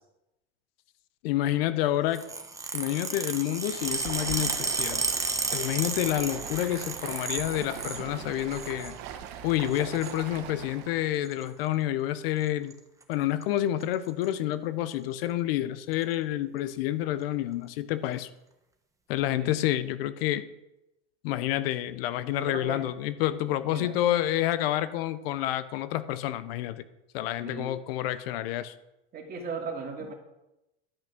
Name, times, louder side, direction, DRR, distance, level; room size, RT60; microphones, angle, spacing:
voice 1, 1.2-2.2 2.7-5.1 5.5-9.0 9.4-12.7 13.1-18.3 19.1-20.4 21.2-26.8 27.1-28.7, left 13 dB, 70° left, 14 dB, 0.8 m, -29 dB
sound 1, 2.1-8.0 8.4-8.9 9.7-10.2 11.3-11.5 12.4-12.7 13.0-13.1 13.4-13.5 13.8-14.3 14.9-15.0 15.9-16.0, right 3 dB, 10° right, 1.3 m, -33 dB
Stream, 3.5-11.1, right 9 dB, 60° right, 1.5 m, -41 dB
voice 2, 22.3-22.8 23.6-23.9 27.4-27.7 29.1-30.1, right 4 dB, 30° right, 2 dB, 2.4 m, -37 dB
12.0 x 5.9 x 6.0 m, 0.91 s
supercardioid pair, 120°, 31 cm